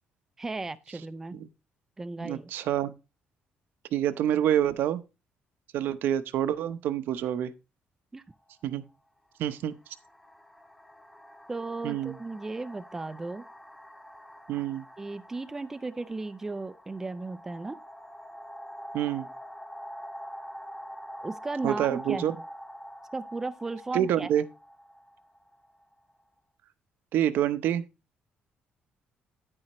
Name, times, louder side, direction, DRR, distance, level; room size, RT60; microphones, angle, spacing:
voice 1, 0.4-1.4 2.0-2.5 8.1-8.2 11.5-13.4 15.0-17.8 21.2-22.4 23.1-24.3, right 3 dB, 10° right, 0.4 m, -35 dB
voice 2, 2.2-2.9 3.9-5.0 5.7-7.5 8.6-8.8 9.4-9.7 11.8-12.1 14.5-14.8 18.9-19.3 21.6-22.3 23.9-24.4 27.1-27.8, right 11 dB, 70° right, 0.8 m, -27 dB
sound 1, 8.3-8.5 9.5-26.1, equal, 5° left, 1.0 m, -46 dB
9.8 x 9.7 x 3.0 m
cardioid pair, 170°, 3 cm